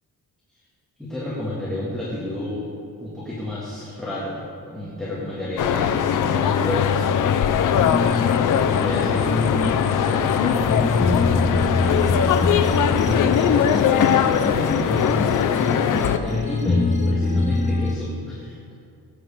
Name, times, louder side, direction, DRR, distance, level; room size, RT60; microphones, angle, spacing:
voice 1, 1.0-2.7 3.0-7.1 8.5-12.3 12.7-18.6, left 1 dB, ahead, -8 dB, 1.9 m, -30 dB
sound 1, 5.6-16.2, left 8 dB, 60° left, 0.6 m, -20 dB
sound 2, 7.8-18.0, left 3 dB, 20° left, 0.8 m, -25 dB
17.0 x 9.4 x 3.6 m, 2.6 s
wide cardioid pair, 165°, 36 cm